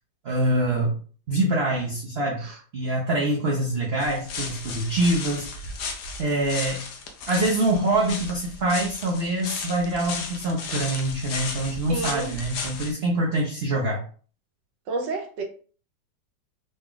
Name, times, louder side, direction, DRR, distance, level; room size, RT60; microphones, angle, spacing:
voice 1, 0.2-1.0 1.3-2.4 2.7-5.7 6.2-6.8 7.3-14.0, right 1 dB, 55° right, 0.7 m, -25 dB
sound 1, 4.0-12.9, left 4 dB, 70° left, 1.2 m, -35 dB
voice 2, 11.9-12.3 14.9-15.4, right 3 dB, 80° right, 1.4 m, -30 dB
3.9 x 2.3 x 3.7 m
omnidirectional pair, 1.9 m